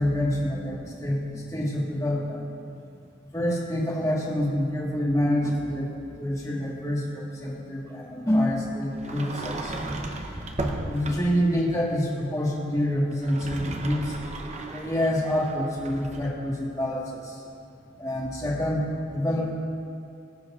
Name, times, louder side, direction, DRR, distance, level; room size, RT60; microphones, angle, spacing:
voice 1, 0.0-2.6 3.3-9.7 10.8-14.2 14.7-17.4 18.0-19.5, equal, 15° left, -3 dB, 1.5 m, -27 dB
Sliding door, 9.0-11.5 13.1-16.3, right 2 dB, 35° right, 0.8 m, -35 dB
21.0 x 8.0 x 2.4 m, 2.6 s
head